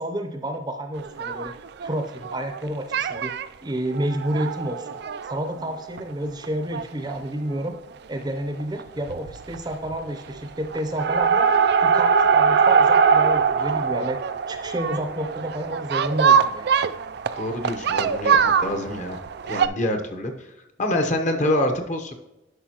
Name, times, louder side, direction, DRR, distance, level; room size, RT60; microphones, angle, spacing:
voice 1, 0.0-1.5 1.8-3.3 3.6-4.9 5.3-7.7 8.1-11.5 11.8-14.2 14.5-16.7, right 1 dB, 20° right, 5 dB, 0.7 m, -30 dB
sound 1, 1.0-2.6 2.9-3.4 3.9-6.0 6.4-6.5 6.7-6.8 7.1-7.2 8.6-8.8 9.1-9.6 9.8-10.4 10.7-19.7, right 6 dB, 60° right, 0.3 m, -22 dB
voice 2, 17.4-19.2 19.4-20.5 20.8-22.1, left 1 dB, 40° left, 5 dB, 0.9 m, -26 dB
11.5 x 5.4 x 2.9 m, 0.98 s
head